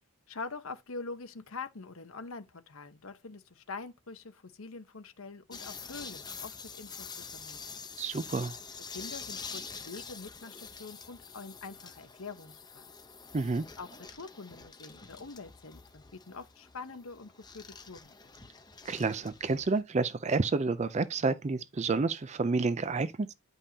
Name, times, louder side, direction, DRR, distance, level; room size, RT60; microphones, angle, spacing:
voice 1, 0.3-7.9 8.9-12.9 13.8-18.1, left 4 dB, 65° left, 0.9 m, -45 dB
sound 1, 5.5-19.8, left 5 dB, 20° left, 0.8 m, -46 dB
voice 2, 8.0-8.6 13.3-13.6 18.8-23.3, right 3 dB, 30° right, 0.4 m, -29 dB
9.9 x 5.3 x 2.8 m
head